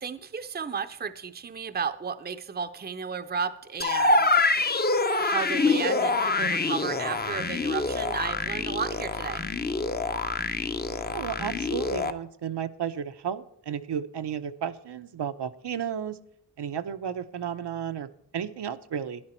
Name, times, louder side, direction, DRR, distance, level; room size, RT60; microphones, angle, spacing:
voice 1, 0.0-4.4 5.2-9.4, right 6 dB, 25° right, 10 dB, 0.6 m, -33 dB
sound 1, 3.8-12.1, left 3 dB, 20° left, 0.6 m, -26 dB
voice 2, 11.0-16.2 16.6-19.2, right 8 dB, 65° right, 10 dB, 0.7 m, -33 dB
12.0 x 10.5 x 4.3 m, 0.73 s
wide cardioid pair, 140°, 43 cm